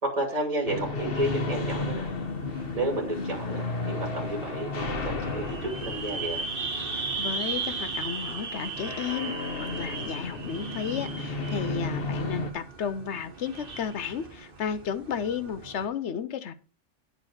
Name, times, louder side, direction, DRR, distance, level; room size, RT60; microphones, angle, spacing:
voice 1, 0.0-2.1 2.7-6.4, right 1 dB, 30° right, 0 dB, 2.5 m, -31 dB
sound 1, 0.7-12.5, left 3 dB, 50° left, 1.3 m, -34 dB
sound 2, 1.2-15.9, right 4 dB, 50° right, 1.4 m, -38 dB
voice 2, 7.2-16.5, left 7 dB, 70° left, 12 dB, 1.0 m, -33 dB
9.4 x 4.5 x 6.3 m, 0.37 s
omnidirectional pair, 1.3 m